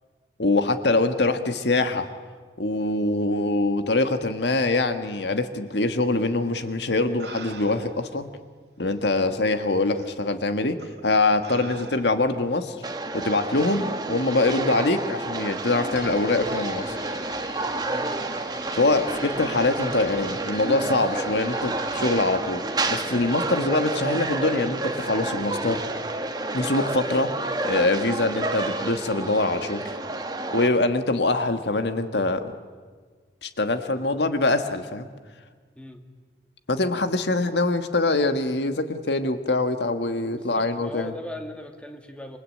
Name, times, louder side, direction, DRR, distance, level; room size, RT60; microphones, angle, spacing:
voice 1, 0.4-2.1 2.6-8.3 8.8-12.8 13.1-17.0 18.8-22.6 22.9-25.8 26.5-27.3 27.6-30.0 30.5-32.5 33.4-35.1 36.7-41.1, left 2 dB, 80° left, 8 dB, 1.7 m, -24 dB
sound 1, 6.6-6.7 7.2-8.1 9.0-9.1 10.0-10.1 10.8-11.0 11.4-12.4 13.7-13.9, right 3 dB, 70° right, 2.2 m, -43 dB
sound 2, 12.8-30.7, right 2 dB, 25° right, 1.4 m, -30 dB
sound 3, 15.9-22.6, left 2 dB, 60° left, 5.6 m, -45 dB
voice 2, 40.3-42.4, left 1 dB, 5° left, 4 dB, 2.2 m, -39 dB
27.5 x 24.5 x 8.6 m, 1.5 s
head